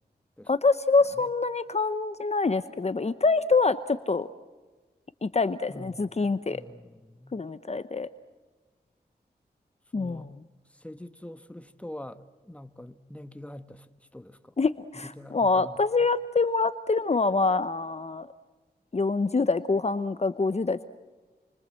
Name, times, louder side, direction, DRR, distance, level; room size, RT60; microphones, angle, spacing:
voice 1, 0.5-4.3 5.2-6.6 7.3-8.1 9.9-10.3 14.6-18.3 18.9-20.8, left 3 dB, 40° left, 13 dB, 0.8 m, -25 dB
voice 2, 5.7-7.4 9.9-10.3 10.7-13.9 14.1-14.5 15.0-15.8, left 1 dB, 5° left, 10 dB, 1.3 m, -44 dB
28.5 x 25.0 x 7.7 m, 1.3 s
cardioid pair, 60°, 17 cm